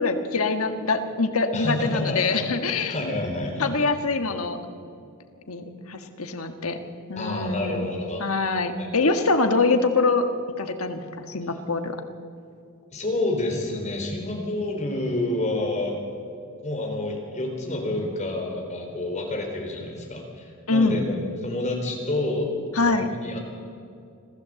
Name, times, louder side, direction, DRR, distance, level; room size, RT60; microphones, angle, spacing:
voice 1, 0.0-2.9 3.6-4.6 5.5-6.8 7.1-7.9 8.2-10.3 10.6-12.0 20.7-21.0 22.7-23.1, left 3 dB, 70° left, 7 dB, 1.6 m, -24 dB
voice 2, 1.5-2.5 2.7-3.7 7.2-8.2 8.8-8.9 12.9-16.0 16.6-22.5 22.8-23.4, left 2 dB, 35° left, 1 dB, 4.2 m, -28 dB
25.5 x 15.0 x 7.8 m, 2.4 s
head